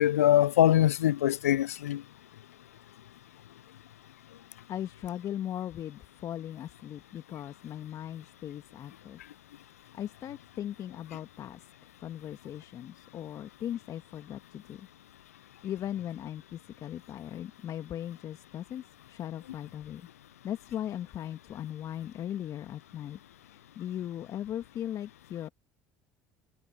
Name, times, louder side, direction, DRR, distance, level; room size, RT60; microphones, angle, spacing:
voice 1, 0.0-2.0, left 12 dB, 85° left, 0.6 m, -23 dB
voice 2, 4.7-9.2 9.9-14.9 15.6-20.1 20.4-25.5, left 11 dB, 50° left, 2.1 m, -38 dB
hypercardioid pair, 65°, 8 cm